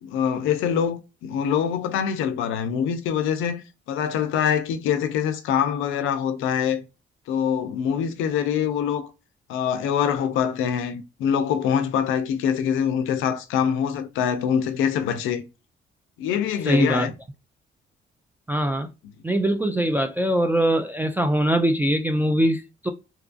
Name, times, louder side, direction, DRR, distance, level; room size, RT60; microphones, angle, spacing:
voice 1, 0.0-3.6 3.9-6.8 7.3-9.1 9.5-15.4 16.2-17.1, left 8 dB, 90° left, 0.5 m, -24 dB
voice 2, 16.7-17.1 18.5-18.9 19.2-22.9, right 1 dB, 10° right, 0.3 m, -22 dB
2.8 x 2.4 x 2.4 m
cardioid pair, 90°, 20 cm